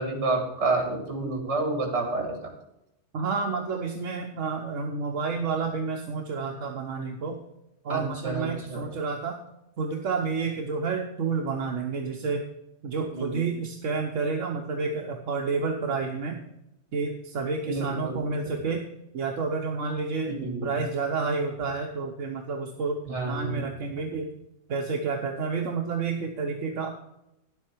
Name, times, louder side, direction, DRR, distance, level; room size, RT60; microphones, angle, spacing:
voice 1, 0.0-2.5 7.9-8.8 12.9-13.5 17.7-18.6 20.3-20.8 23.1-23.6, right 3 dB, 65° right, 2 dB, 2.5 m, -30 dB
voice 2, 3.1-7.4 7.8-9.4 9.8-12.5 12.8-16.4 16.9-18.8 19.1-20.3 20.6-24.3 24.7-26.9, right 4 dB, 85° right, 2 dB, 1.3 m, -30 dB
10.0 x 8.2 x 4.6 m, 0.86 s
omnidirectional pair, 1.3 m